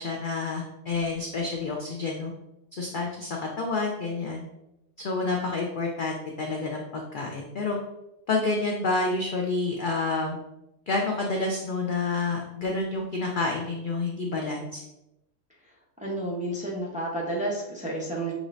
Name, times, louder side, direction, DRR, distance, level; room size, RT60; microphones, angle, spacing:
voice 1, 0.0-2.3 2.7-4.5 5.0-7.8 8.3-10.4 10.9-14.8, left 3 dB, 65° left, 0 dB, 0.5 m, -29 dB
voice 2, 16.0-18.3, right 1 dB, 10° right, -3 dB, 0.6 m, -31 dB
6.3 x 3.0 x 2.5 m, 0.89 s
omnidirectional pair, 1.5 m